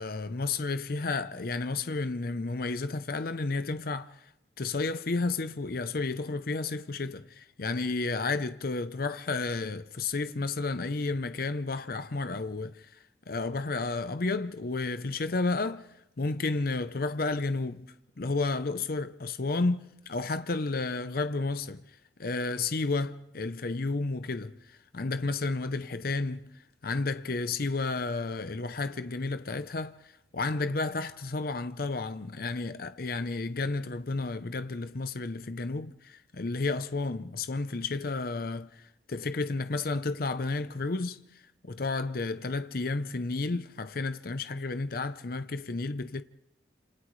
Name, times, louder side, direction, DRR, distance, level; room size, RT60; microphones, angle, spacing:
voice 1, 0.0-4.3 4.6-12.9 13.3-15.9 16.2-17.9 18.2-21.8 22.2-26.5 26.8-41.2 41.6-46.2, left 3 dB, 55° left, 0.7 m, -32 dB
29.5 x 27.5 x 3.2 m
head